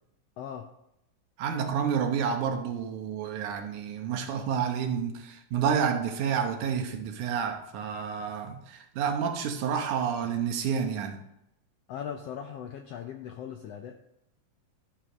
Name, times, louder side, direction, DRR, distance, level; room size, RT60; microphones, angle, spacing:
voice 1, 0.4-0.7 11.9-14.0, left 8 dB, 80° left, 1.4 m, -39 dB
voice 2, 1.4-11.2, right 7 dB, 75° right, 2.4 m, -29 dB
13.0 x 5.6 x 5.0 m
omnidirectional pair, 3.6 m